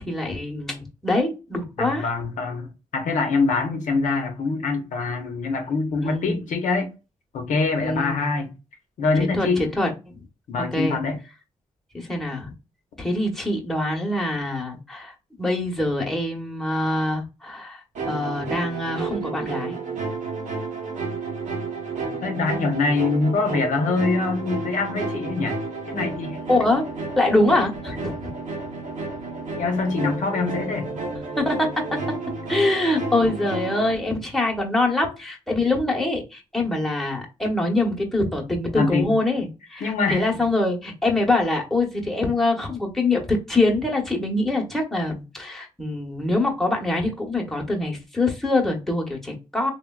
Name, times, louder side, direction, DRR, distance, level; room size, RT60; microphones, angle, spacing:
voice 1, 0.0-2.1 6.0-6.4 7.8-8.1 9.2-9.9 10.6-11.0 11.9-12.5 13.0-15.1 15.4-19.8 26.5-26.8 27.2-28.3 31.4-31.7 32.5-49.7, left 2 dB, ahead, 0.9 m, -24 dB
voice 2, 1.8-6.9 7.3-8.5 9.0-9.6 10.5-11.2 22.2-25.6 25.9-26.4 29.6-30.9 38.7-39.2 39.8-40.3, left 3 dB, 80° left, 0.7 m, -24 dB
sound 1, 18.0-33.9, right 3 dB, 70° right, 0.8 m, -31 dB
3.3 x 2.2 x 2.2 m
cardioid pair, 70°, 13 cm